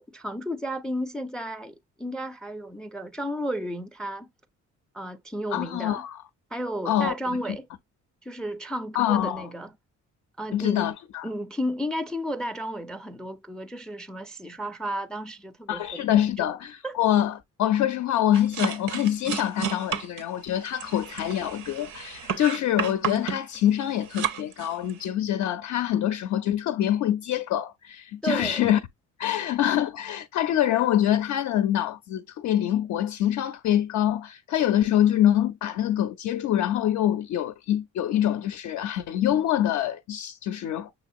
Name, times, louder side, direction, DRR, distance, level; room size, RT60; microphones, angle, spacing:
voice 1, 0.0-4.3 4.9-6.0 6.5-7.7 8.2-9.7 10.4-10.9 11.2-16.5 16.8-17.0 28.2-28.6 29.4-29.5, equal, 5° left, 0.4 m, -33 dB
voice 2, 5.5-6.2 6.9-7.1 8.9-9.5 10.5-11.3 15.7-28.8 29.2-40.9, left 11 dB, 70° left, 0.5 m, -25 dB
sound 1, 18.3-25.1, right 8 dB, 75° right, 0.7 m, -32 dB
6.2 x 3.0 x 2.5 m
cardioid pair, 90°, 30 cm